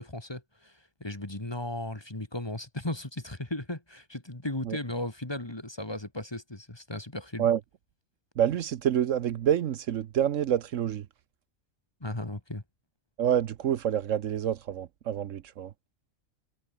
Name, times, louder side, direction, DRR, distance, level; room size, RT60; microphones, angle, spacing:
voice 1, 0.0-7.5 12.0-12.6, left 1 dB, 20° left, 2.1 m, -36 dB
voice 2, 8.4-11.1 13.2-15.7, right 10 dB, 70° right, 1.1 m, -27 dB
omnidirectional pair, 1.4 m